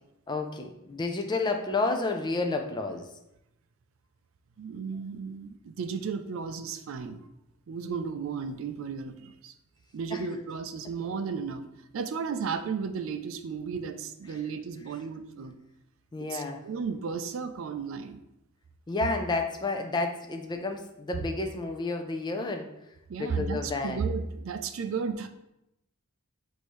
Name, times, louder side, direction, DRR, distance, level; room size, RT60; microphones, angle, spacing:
voice 1, 0.3-3.1 10.1-10.2 16.1-16.6 18.9-22.7 23.2-24.0, left 3 dB, 20° left, 4 dB, 0.4 m, -30 dB
voice 2, 4.6-7.2 7.7-9.5 9.9-15.6 16.2-18.2 23.1-25.3, right 5 dB, 60° right, 8 dB, 0.3 m, -34 dB
6.2 x 2.7 x 3.1 m, 0.87 s
head